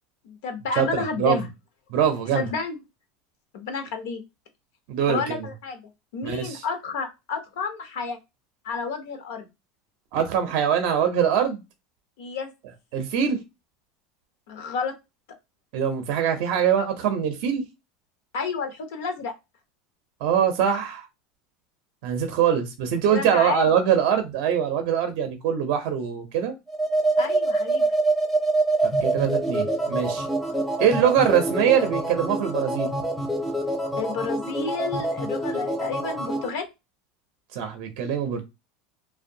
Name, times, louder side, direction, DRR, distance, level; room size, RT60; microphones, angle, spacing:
voice 1, 0.2-1.5 2.3-2.8 3.5-4.2 5.1-5.8 6.1-8.2 8.6-9.5 12.2-12.5 14.5-14.9 18.3-19.3 23.1-23.7 27.2-27.8 33.9-36.7, left 5 dB, 75° left, 0.6 m, -30 dB
voice 2, 0.8-1.4 1.9-2.5 4.9-5.4 6.2-6.6 10.1-11.6 12.9-13.4 15.7-17.6 20.2-21.0 22.0-26.5 29.0-30.3 30.8-32.9 37.5-38.4, right 8 dB, 55° right, 0.5 m, -23 dB
sound 1, 26.7-36.5, right 2 dB, ahead, 0.3 m, -25 dB
2.5 x 2.1 x 2.6 m
supercardioid pair, 165°, 0 cm